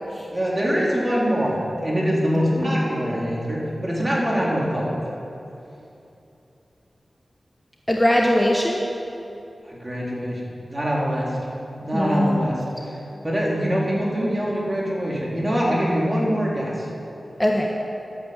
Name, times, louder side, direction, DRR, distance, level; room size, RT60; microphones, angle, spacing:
voice 1, 0.3-5.0 9.6-10.4 10.7-11.3 11.8-12.6 13.2-16.7, equal, 25° right, -5 dB, 3.9 m, -23 dB
voice 2, 2.6-2.9 7.9-8.8 11.9-12.4 17.4-17.7, left 1 dB, 10° left, 0 dB, 1.1 m, -21 dB
12.0 x 8.7 x 8.3 m, 2.9 s
cardioid pair, 50°, 0 cm